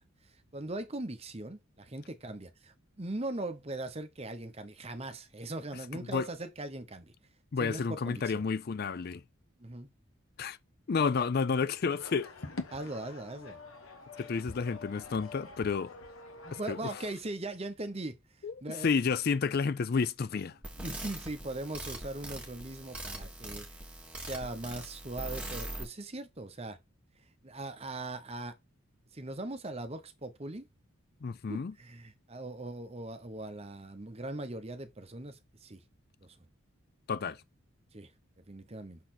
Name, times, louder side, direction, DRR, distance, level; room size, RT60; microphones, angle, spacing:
voice 1, 0.5-7.1 7.6-8.4 9.6-9.9 12.7-13.6 16.4-18.2 18.6-18.9 20.8-23.8 24.2-26.8 27.4-28.5 29.1-30.7 31.5-35.8 36.2-36.4 37.9-38.1 38.5-39.0, right 2 dB, 30° right, 0.8 m, -40 dB
voice 2, 5.9-6.3 7.5-9.2 10.4-10.6 10.9-12.3 14.2-16.0 16.5-16.8 18.4-20.6 31.2-31.7 37.1-37.4, left 5 dB, 45° left, 0.4 m, -31 dB
sound 1, 12.0-17.1, left 3 dB, 75° left, 1.1 m, -45 dB
sound 2, 20.6-25.8, right 1 dB, 5° right, 1.6 m, -42 dB
6.4 x 4.1 x 4.2 m
head